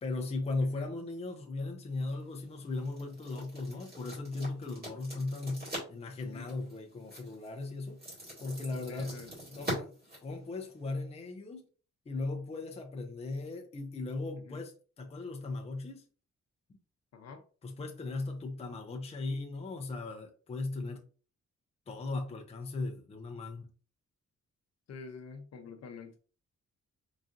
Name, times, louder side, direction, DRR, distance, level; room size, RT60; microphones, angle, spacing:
voice 1, 0.0-8.0 8.4-9.2 9.5-9.9 10.2-11.7 12.1-16.1 17.6-21.0 21.9-23.7, left 3 dB, 20° left, 0.5 m, -37 dB
sound 1, 1.9-10.9, equal, 35° right, 2.1 m, -44 dB
voice 2, 6.3-6.6 8.9-9.3 14.5-14.6 17.1-17.4 24.9-26.2, left 5 dB, 60° left, 0.7 m, -47 dB
4.1 x 3.6 x 2.6 m
wide cardioid pair, 175°, 29 cm